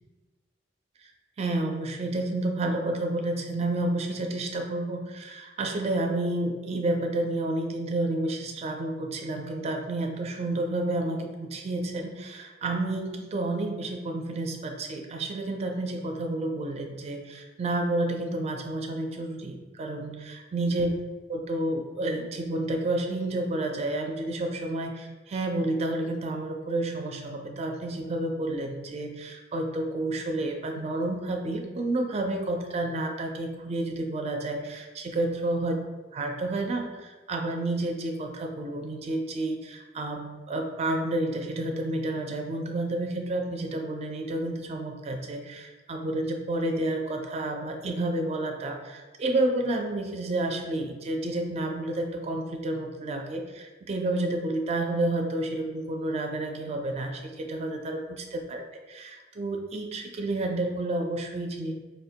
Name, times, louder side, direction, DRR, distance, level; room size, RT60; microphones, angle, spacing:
voice 1, 1.4-20.9 21.3-35.8 36.1-58.0 58.3-58.6 58.9-61.7, right 2 dB, 35° right, 2 dB, 0.4 m, -30 dB
4.6 x 2.1 x 2.8 m, 1.3 s
head